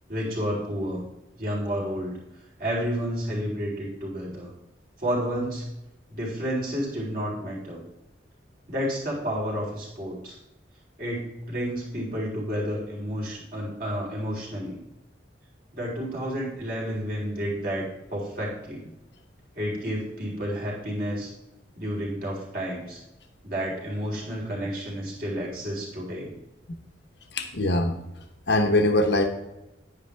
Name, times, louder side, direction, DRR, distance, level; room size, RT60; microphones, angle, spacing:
voice 1, 0.1-1.0 1.4-2.2 2.6-4.5 5.0-5.6 6.1-7.8 8.7-10.4 11.0-14.8 15.7-18.8 19.5-21.3 21.8-23.0 23.4-26.3, equal, 50° right, -3 dB, 3.9 m, -30 dB
voice 2, 27.3-28.0 28.5-29.3, left 1 dB, 65° left, 6 dB, 1.0 m, -22 dB
10.5 x 9.7 x 3.4 m, 0.93 s
head